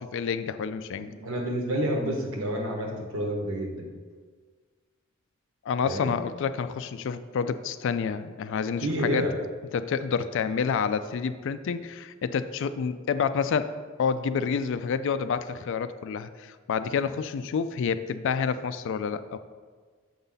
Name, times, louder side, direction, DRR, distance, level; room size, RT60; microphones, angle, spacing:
voice 1, 0.0-1.1 5.7-9.3 9.7-13.7 14.0-19.4, left 6 dB, 65° left, 12 dB, 0.3 m, -28 dB
voice 2, 1.0-3.9 5.8-6.2 8.8-9.4, right 1 dB, 70° right, 1 dB, 1.2 m, -29 dB
7.1 x 5.5 x 3.9 m, 1.5 s
head